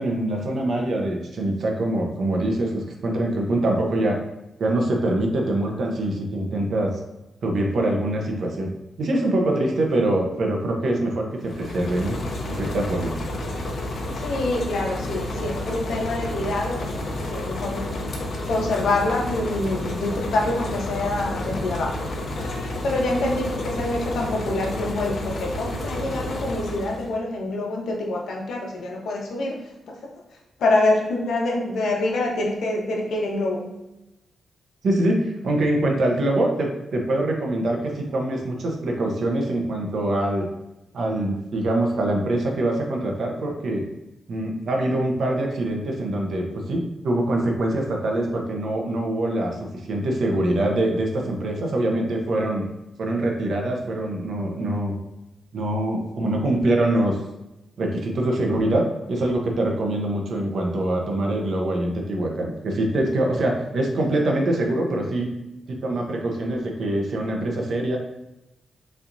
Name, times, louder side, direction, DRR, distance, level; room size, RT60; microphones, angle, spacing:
voice 1, 0.0-4.2 4.6-6.9 7.4-8.7 9.0-12.1 12.4-13.1 34.8-40.5 40.9-43.8 44.3-49.5 49.9-52.7 53.0-55.0 55.5-57.2 57.8-65.3 65.7-68.0, right 1 dB, 65° right, 1 dB, 1.0 m, -24 dB
sound 1, 11.4-27.2, left 1 dB, 60° left, 0.8 m, -30 dB
voice 2, 14.1-18.1 18.5-22.0 22.3-29.5 30.6-33.6, left 2 dB, 85° left, -1 dB, 1.0 m, -26 dB
5.5 x 3.4 x 2.7 m, 0.94 s
cardioid pair, 100°, 0 cm